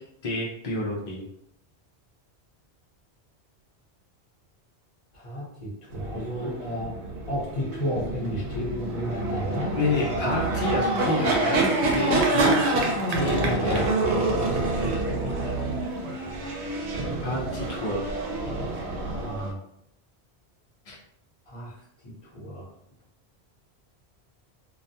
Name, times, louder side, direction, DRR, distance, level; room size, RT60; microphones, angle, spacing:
voice 1, 0.2-1.2 9.8-12.6 13.1-14.0 17.2-18.0 20.9-21.0, left 1 dB, 60° left, -3 dB, 0.4 m, -28 dB
voice 2, 5.2-6.9 7.3-9.7 19.2-19.6 21.5-21.7 22.0-22.6, equal, 35° left, -5 dB, 0.8 m, -32 dB
sound 1, 5.9-19.5, right 2 dB, 85° right, 0.9 m, -27 dB
2.3 x 2.2 x 2.7 m, 0.74 s
omnidirectional pair, 1.1 m